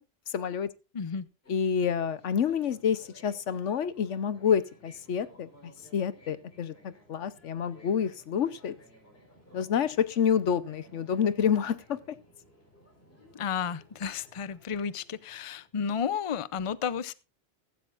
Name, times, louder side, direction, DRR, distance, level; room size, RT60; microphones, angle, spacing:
voice 1, 0.3-0.7 1.5-8.7 9.5-12.0, left 7 dB, 90° left, 15 dB, 1.2 m, -28 dB
voice 2, 0.9-1.3 13.3-17.1, left 7 dB, 35° left, 16 dB, 0.6 m, -32 dB
sound 1, 1.4-15.7, equal, 55° left, 4.3 m, -57 dB
15.5 x 14.5 x 2.5 m, 0.29 s
omnidirectional pair, 1.2 m